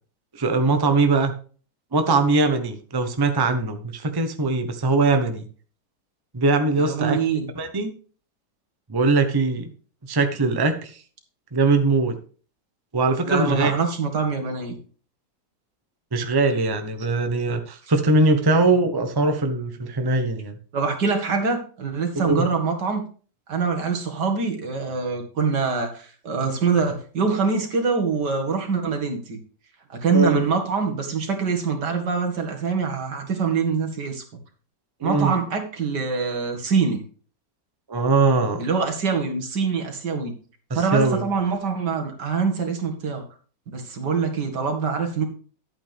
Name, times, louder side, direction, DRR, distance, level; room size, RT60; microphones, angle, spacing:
voice 1, 0.4-1.3 1.9-5.5 6.3-7.2 7.5-7.9 8.9-9.7 10.1-10.9 11.5-12.1 12.9-13.7 16.1-20.5 22.1-22.5 30.1-30.4 35.0-35.3 37.9-38.6 40.7-41.2, right 3 dB, 15° right, 7 dB, 0.8 m, -21 dB
voice 2, 6.8-7.5 13.2-14.8 17.8-17.9 20.7-23.0 23.5-29.4 29.9-34.2 35.0-37.0 38.6-40.3 40.7-43.2 43.7-45.2, right 5 dB, 75° right, 3 dB, 2.4 m, -24 dB
11.5 x 8.8 x 3.5 m, 0.40 s
omnidirectional pair, 1.8 m